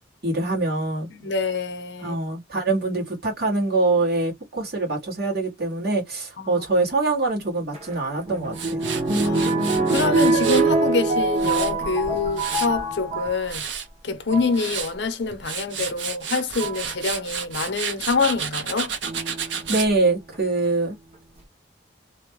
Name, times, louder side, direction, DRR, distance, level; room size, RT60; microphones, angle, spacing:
voice 1, 0.2-1.1 2.0-8.9 19.7-21.0, right 2 dB, 55° right, 1.5 m, -24 dB
voice 2, 1.1-2.2 6.4-6.6 9.2-13.7 14.0-18.9, left 4 dB, 65° left, 0.7 m, -26 dB
sound 1, 7.7-13.4 14.1-14.6 15.8-15.9 16.6-16.9 19.0-19.7 20.3-20.4 20.6-20.7, right 2 dB, 35° right, 1.0 m, -24 dB
Tools, 8.5-10.7 11.2-12.8 13.3-13.8 14.4-14.9 15.3-19.9, right 7 dB, 75° right, 0.7 m, -31 dB
3.0 x 2.2 x 3.1 m
head